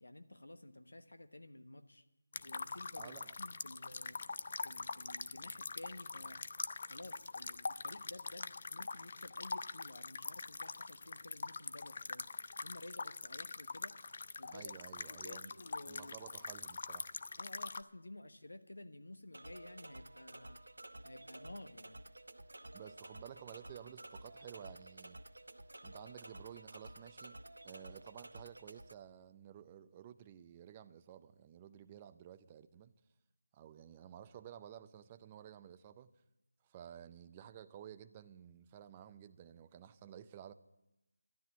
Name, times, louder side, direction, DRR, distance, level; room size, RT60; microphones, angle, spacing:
voice 1, 0.0-2.0 2.4-4.2 4.6-6.4 6.9-12.2 12.6-13.9 14.4-14.7 15.1-16.1 17.4-20.6 21.0-22.0, left 1 dB, 90° left, 1.2 m, -53 dB
sound 1, 2.3-17.8, left 4 dB, 45° left, 0.4 m, -44 dB
voice 2, 3.0-3.3 14.4-15.5 15.9-17.1 22.7-25.2 25.8-27.4 27.6-32.9 33.5-36.1 36.6-40.5, right 10 dB, 15° right, 0.5 m, -53 dB
sound 2, 19.3-28.9, right 1 dB, 85° right, 0.7 m, -52 dB
12.5 x 11.0 x 7.3 m
figure-of-eight pair, 170°, 0 cm